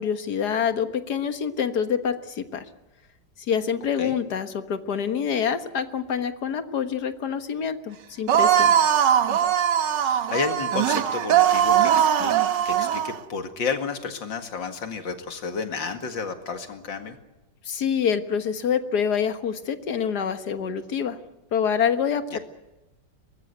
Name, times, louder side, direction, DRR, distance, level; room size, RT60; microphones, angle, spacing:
voice 1, 0.0-2.7 3.5-8.7 17.6-21.2 21.5-22.4, left 7 dB, 60° left, 9 dB, 1.9 m, -26 dB
sound 1, 8.3-13.2, right 9 dB, 75° right, 1.7 m, -20 dB
voice 2, 10.0-12.3 12.6-17.2 22.3-22.4, left 5 dB, 85° left, 6 dB, 2.8 m, -31 dB
23.0 x 20.0 x 8.1 m, 1.0 s
omnidirectional pair, 2.0 m